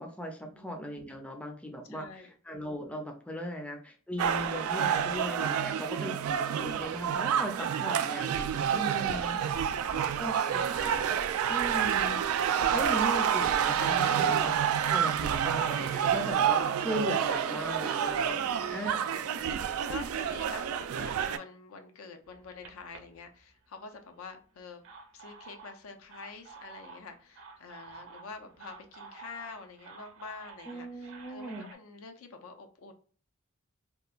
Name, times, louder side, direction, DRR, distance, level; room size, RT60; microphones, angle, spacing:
voice 1, 0.0-9.4 10.1-11.2 11.5-12.2 12.7-14.5 14.9-19.1 30.7-31.7, equal, 5° left, 2 dB, 0.4 m, -38 dB
voice 2, 1.9-2.3 5.5-5.8 8.7-10.5 12.7-12.9 14.0-14.4 18.3-18.9 19.9-24.8 25.1-32.9, left 4 dB, 75° left, 6 dB, 0.5 m, -47 dB
sound 1, 4.2-21.4, right 8 dB, 80° right, 0.3 m, -28 dB
sound 2, 22.2-23.9 24.6-31.7, right 4 dB, 65° right, 0.7 m, -51 dB
2.9 x 2.2 x 2.4 m, 0.41 s
head